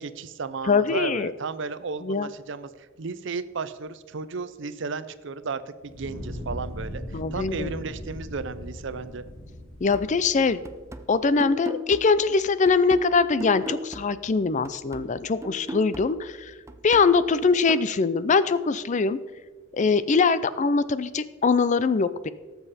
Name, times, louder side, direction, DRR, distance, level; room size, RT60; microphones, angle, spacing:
voice 1, 0.0-9.2, right 4 dB, 65° right, 13 dB, 0.6 m, -34 dB
voice 2, 0.7-1.3 2.0-2.3 7.1-7.7 9.8-10.6 11.1-16.5 16.8-19.2 19.7-22.3, left 4 dB, 35° left, 15 dB, 0.4 m, -22 dB
Fire, 5.8-11.0, equal, 75° left, 3.0 m, -39 dB
sound 1, 9.9-14.4 14.6-17.9, left 1 dB, 15° right, 0.6 m, -38 dB
17.5 x 7.0 x 4.2 m, 1.3 s
head